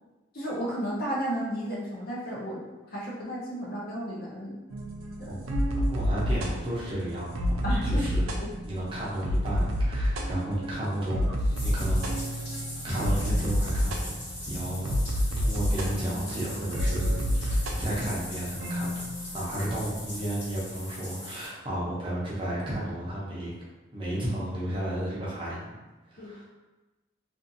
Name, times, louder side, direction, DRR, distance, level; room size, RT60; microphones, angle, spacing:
voice 1, 0.3-2.6 2.9-4.6 5.2-5.4 7.6-8.5 26.2-26.3, equal, 45° left, -5 dB, 0.7 m, -33 dB
sound 1, 4.7-21.0, equal, 90° right, 0.4 m, -30 dB
voice 2, 5.7-8.3 8.6-12.2 12.8-23.5 23.9-25.7 26.1-26.5, right 1 dB, 25° right, -7 dB, 0.6 m, -33 dB
Bathtub (filling or washing), 11.4-21.5, left 1 dB, 65° left, 1.0 m, -41 dB
2.5 x 2.4 x 2.6 m, 1.1 s
head